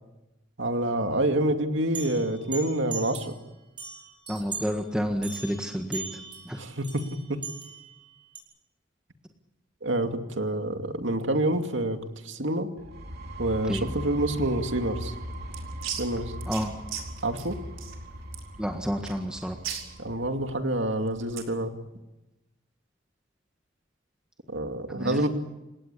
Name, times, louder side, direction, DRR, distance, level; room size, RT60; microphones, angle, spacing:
voice 1, 0.6-3.4 6.6-6.8 7.3-7.4 9.8-12.0 12.2-12.7 13.4-15.1 16.0-16.3 17.2-17.6 20.0-21.7 24.5-25.3, right 1 dB, 70° right, 5 dB, 2.4 m, -27 dB
sound 1, 1.9-3.4 3.8-4.8 5.2-8.4, right 5 dB, 25° right, 6.2 m, -40 dB
voice 2, 4.3-6.6 13.6-13.9 16.5-16.8 18.6-19.6 24.9-25.3, equal, 5° right, 3 dB, 1.7 m, -30 dB
sound 2, 12.8-20.4, equal, 55° right, 3.1 m, -39 dB
sound 3, 15.1-21.6, right 8 dB, 85° right, 4.9 m, -40 dB
29.0 x 18.0 x 8.5 m, 1.0 s
head